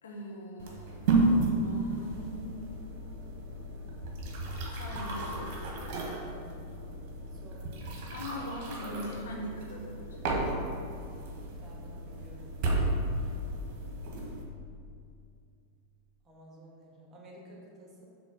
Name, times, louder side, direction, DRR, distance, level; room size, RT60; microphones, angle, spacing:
voice 1, 0.0-2.6 4.8-6.0 8.1-10.2, equal, 65° left, -1 dB, 1.0 m, -41 dB
sound 1, 0.6-14.4, right 2 dB, 40° right, 1.3 m, -33 dB
voice 2, 11.6-12.9 16.2-18.1, right 1 dB, 20° right, -3 dB, 1.7 m, -53 dB
7.0 x 3.7 x 5.7 m, 2.4 s
figure-of-eight pair, 90°, 0 cm